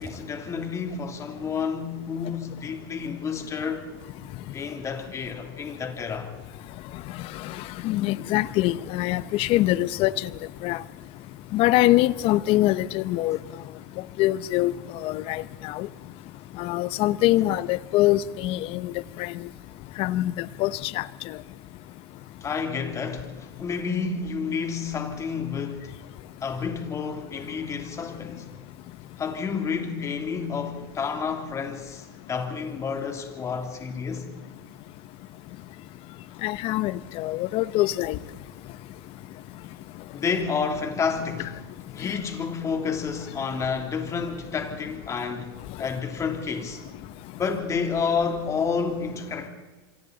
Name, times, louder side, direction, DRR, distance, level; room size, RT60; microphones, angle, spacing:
voice 1, 0.0-3.8 4.5-6.3 22.4-26.0 26.4-28.5 29.2-34.3 40.1-41.6 41.9-46.8 47.4-49.5, left 5 dB, 20° left, 3.1 m, -30 dB
voice 2, 7.8-10.3 10.6-10.8 11.5-13.4 14.2-14.7 15.0-15.9 16.6-18.9 19.2-19.3 20.0-21.0 36.4-38.2, left 16 dB, 45° left, 0.9 m, -24 dB
27.5 x 24.0 x 4.1 m
supercardioid pair, 130°, 13 cm